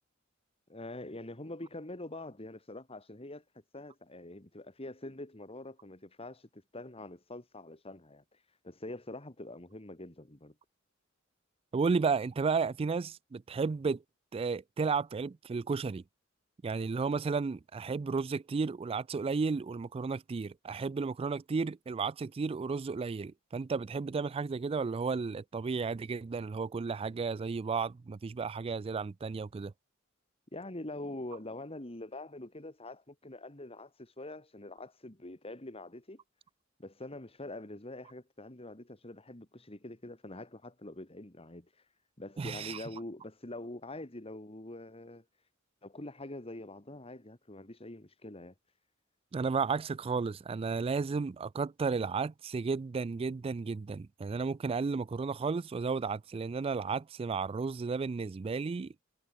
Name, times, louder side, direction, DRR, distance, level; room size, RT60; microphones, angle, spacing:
voice 1, 0.7-3.4 3.7-8.2 8.6-10.5 30.5-36.2 36.8-41.7 42.2-45.2 45.8-48.5, left 2 dB, 30° left, 2.5 m, -45 dB
voice 2, 11.7-14.0 14.3-16.0 16.6-29.7 42.4-42.8 49.3-58.9, right 4 dB, 30° right, 0.3 m, -33 dB
head